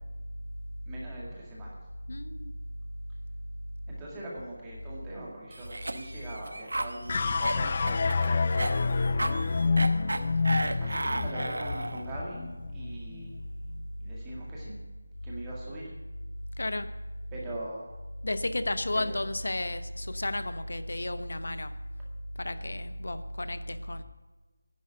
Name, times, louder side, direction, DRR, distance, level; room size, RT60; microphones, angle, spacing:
voice 1, 0.9-1.7 3.9-8.5 9.2-10.0 10.8-13.5 14.0-14.7 15.2-15.8 17.3-17.9 18.9-19.2, right 1 dB, 10° right, -5 dB, 2.0 m, -42 dB
voice 2, 2.1-2.5 16.6-16.9 18.2-21.7 22.4-24.0, left 1 dB, 70° left, 11 dB, 0.9 m, -32 dB
Cough, 5.5-12.1, right 2 dB, 75° right, 0.9 m, -34 dB
sound 1, 7.1-13.5, left 4 dB, 25° left, 0.3 m, -28 dB
10.5 x 7.8 x 9.8 m, 1.2 s
figure-of-eight pair, 175°, 0 cm